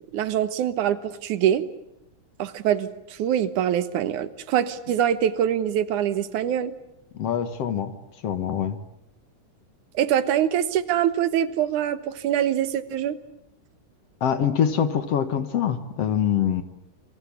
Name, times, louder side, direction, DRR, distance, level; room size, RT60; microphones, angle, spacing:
voice 1, 0.0-1.7 2.4-6.7 9.9-13.2, right 10 dB, 80° right, 13 dB, 2.7 m, -24 dB
voice 2, 7.1-7.9 8.2-8.8 14.2-16.6, left 8 dB, 60° left, 11 dB, 2.3 m, -24 dB
27.0 x 24.0 x 8.4 m, 0.83 s
omnidirectional pair, 3.5 m